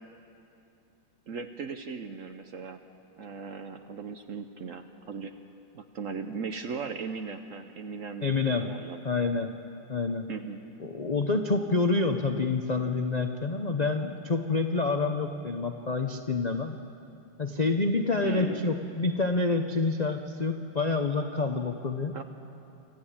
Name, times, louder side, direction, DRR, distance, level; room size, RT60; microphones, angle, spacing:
voice 1, 1.3-2.8 3.2-5.3 5.7-9.0 10.3-10.6 18.2-18.6 22.1-22.2, right 5 dB, 55° right, 7 dB, 0.9 m, -38 dB
voice 2, 8.2-8.7 9.0-9.5 9.9-10.3 10.8-16.8 17.4-22.2, left 3 dB, 50° left, 5 dB, 0.5 m, -27 dB
26.5 x 13.5 x 8.7 m, 2.8 s
omnidirectional pair, 2.0 m